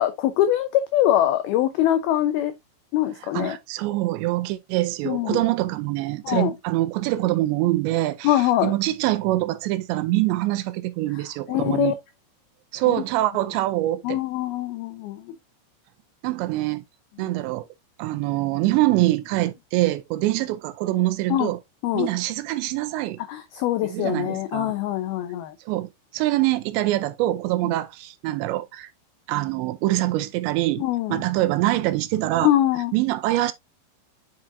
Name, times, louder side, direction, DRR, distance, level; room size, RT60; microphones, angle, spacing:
voice 1, 0.0-2.5 2.9-3.6 5.1-5.4 6.2-6.5 8.2-8.7 11.5-11.9 12.9-13.0 14.0-15.4 21.3-21.5 21.8-22.1 23.3-25.6 30.8-31.2 32.4-32.9, left 12 dB, 85° left, 2.1 m, -23 dB
voice 2, 3.3-12.0 12.7-14.2 16.2-16.8 17.2-17.7 18.0-21.6 21.9-23.2 23.9-24.7 25.7-28.9 29.3-30.8 31.1-32.5 32.9-33.5, right 16 dB, 80° right, 2.8 m, -24 dB
7.8 x 5.9 x 2.7 m
omnidirectional pair, 5.3 m